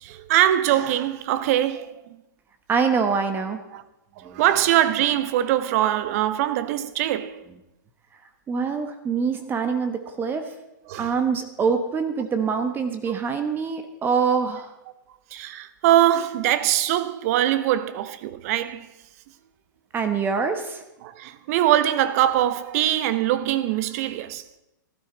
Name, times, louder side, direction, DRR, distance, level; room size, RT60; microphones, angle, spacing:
voice 1, 0.0-1.9 3.7-3.8 4.3-7.3 10.9-11.1 15.3-18.9 21.0-24.4, right 12 dB, 45° right, 0.9 m, -22 dB
voice 2, 2.7-3.6 4.2-4.4 8.5-10.5 11.0-14.7 19.9-20.8, right 5 dB, 20° right, 1.1 m, -25 dB
14.5 x 12.5 x 4.0 m
hypercardioid pair, 125°, 11 cm